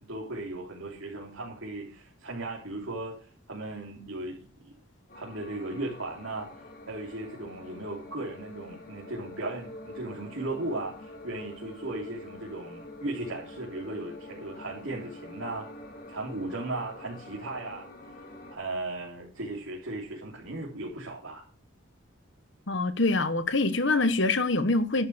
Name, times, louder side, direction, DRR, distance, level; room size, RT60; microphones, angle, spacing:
voice 1, 0.0-4.8 5.1-6.5 6.9-15.7 16.1-17.9 18.5-21.4, right 2 dB, 75° right, 3.5 m, -37 dB
sound 1, 5.1-18.6, left 2 dB, 45° left, 2.8 m, -46 dB
voice 2, 22.7-25.1, left 2 dB, 60° left, 1.2 m, -25 dB
11.5 x 6.9 x 6.8 m
head